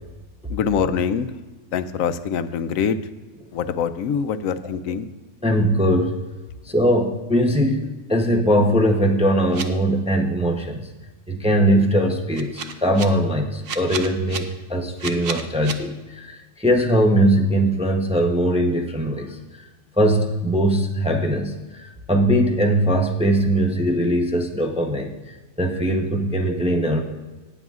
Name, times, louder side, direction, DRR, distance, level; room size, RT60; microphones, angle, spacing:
voice 1, 0.5-1.3 1.7-3.0 3.5-5.1, left 7 dB, 90° left, 12 dB, 1.0 m, -24 dB
voice 2, 5.4-6.2 6.7-7.8 8.1-10.8 11.3-19.4 20.0-21.5 22.1-25.1 25.6-27.0, equal, 5° right, 2 dB, 0.6 m, -20 dB
sound 1, 9.5-9.6 12.4-13.1 13.6-14.4 15.0-15.7, right 6 dB, 55° right, 0.8 m, -30 dB
18.5 x 7.8 x 2.4 m, 1.3 s
omnidirectional pair, 1.4 m